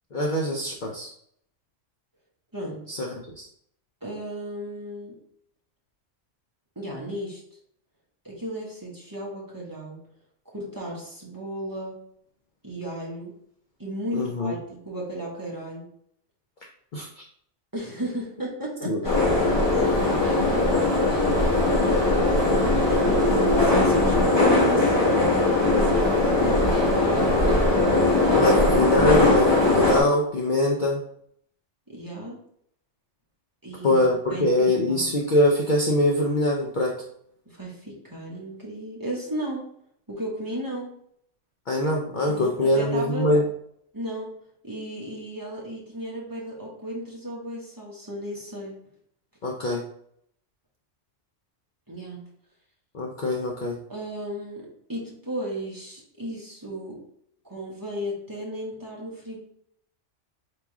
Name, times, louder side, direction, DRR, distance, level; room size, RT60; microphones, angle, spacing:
voice 1, 0.1-1.1 2.9-3.5 14.1-14.5 16.9-17.2 18.8-19.0 20.4-20.5 28.3-31.0 33.8-37.0 41.7-43.5 49.4-49.8 52.9-53.8, left 1 dB, 50° left, -1 dB, 0.6 m, -23 dB
voice 2, 2.5-2.9 4.0-5.1 6.8-7.4 8.2-10.0 10.5-12.0 12.6-13.3 13.8-15.9 17.7-19.2 19.8-20.2 20.5-20.8 21.7-22.3 22.7-25.3 25.7-27.6 31.9-32.4 33.6-34.0 34.3-35.1 37.5-39.6 40.1-40.9 42.3-43.3 43.9-44.3 44.6-48.8 51.9-52.3 53.9-57.0 57.4-59.4, right 1 dB, 20° right, -4 dB, 1.0 m, -34 dB
sound 1, 19.0-30.0, left 2 dB, 20° left, 1.1 m, -20 dB
3.5 x 3.0 x 4.6 m, 0.68 s
omnidirectional pair, 1.2 m